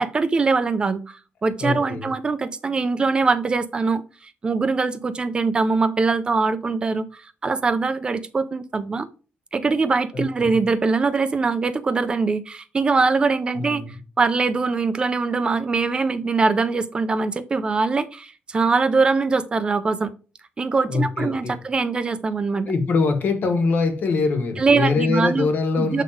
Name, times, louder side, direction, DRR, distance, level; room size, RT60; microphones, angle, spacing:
voice 1, 0.0-9.1 9.5-20.1 20.6-22.7 24.6-25.5 25.8-26.0, right 4 dB, 25° right, 12 dB, 0.5 m, -22 dB
voice 2, 1.6-2.1 10.1-10.5 13.5-14.0 20.8-21.6 22.6-26.0, left 4 dB, 55° left, 7 dB, 1.5 m, -23 dB
7.3 x 3.9 x 4.9 m, 0.35 s
cardioid pair, 155°, 4 cm